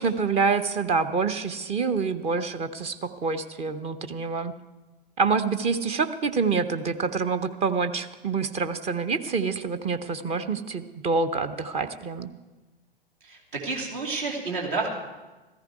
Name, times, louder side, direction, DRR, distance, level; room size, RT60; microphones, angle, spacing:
voice 1, 0.0-4.5 5.2-12.3, right 4 dB, 20° right, 11 dB, 0.6 m, -27 dB
voice 2, 13.2-14.9, right 3 dB, 60° right, 0 dB, 2.8 m, -30 dB
14.5 x 14.0 x 4.7 m, 1.2 s
figure-of-eight pair, 95°, 29 cm